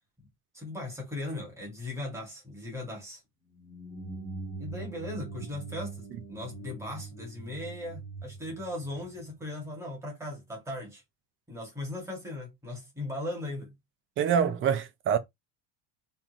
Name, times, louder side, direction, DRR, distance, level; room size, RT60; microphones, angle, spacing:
voice 1, 0.5-3.2 4.6-11.0 11.5-13.7, left 1 dB, 5° right, 2.2 m, -38 dB
sound 1, 3.5-9.6, right 3 dB, 10° left, 1.3 m, -42 dB
voice 2, 14.2-15.2, right 8 dB, 30° right, 0.6 m, -25 dB
4.4 x 3.7 x 3.0 m
cardioid pair, 170°, 42 cm